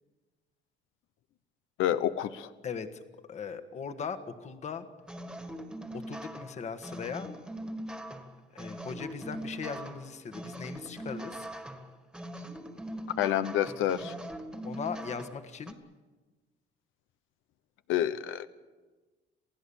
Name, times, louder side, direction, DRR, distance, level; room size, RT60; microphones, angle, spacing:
voice 1, 1.8-2.5 13.2-14.1 17.9-18.5, left 11 dB, 85° left, 12 dB, 1.0 m, -28 dB
voice 2, 2.6-3.0 3.3-4.9 6.1-7.3 8.5-11.5 14.6-15.8, left 6 dB, 35° left, 9 dB, 1.5 m, -39 dB
sound 1, 5.1-15.7, right 1 dB, 5° right, 1.7 m, -41 dB
28.0 x 17.5 x 7.1 m, 1.3 s
cardioid pair, 165°, 20 cm